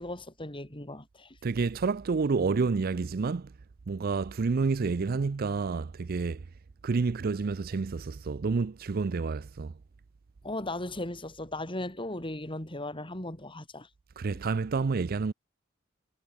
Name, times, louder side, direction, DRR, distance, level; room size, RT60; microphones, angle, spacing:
voice 1, 0.0-1.4 10.4-13.9, left 1 dB, 25° left, 3.9 m, -37 dB
voice 2, 1.4-3.5 3.9-6.4 6.8-9.7 14.2-15.3, right 4 dB, 45° right, 0.5 m, -29 dB
head